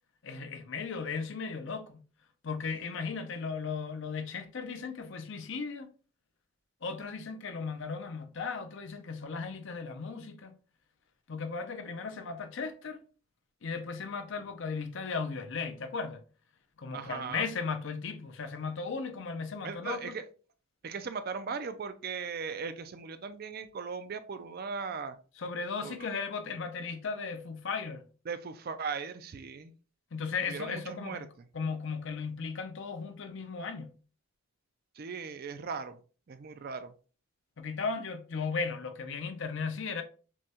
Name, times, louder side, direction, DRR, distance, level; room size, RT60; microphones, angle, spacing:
voice 1, 0.2-2.0 2.4-5.9 6.8-10.6 11.3-13.0 13.6-16.2 16.8-20.1 25.4-28.0 30.1-31.3 31.5-33.9 37.6-40.0, left 5 dB, 55° left, 0.5 m, -36 dB
voice 2, 16.9-17.5 19.6-20.2 20.8-25.2 25.8-26.1 28.3-29.7 30.5-31.3 35.0-36.0 36.3-36.9, right 5 dB, 45° right, 0.4 m, -38 dB
6.1 x 2.3 x 2.8 m
head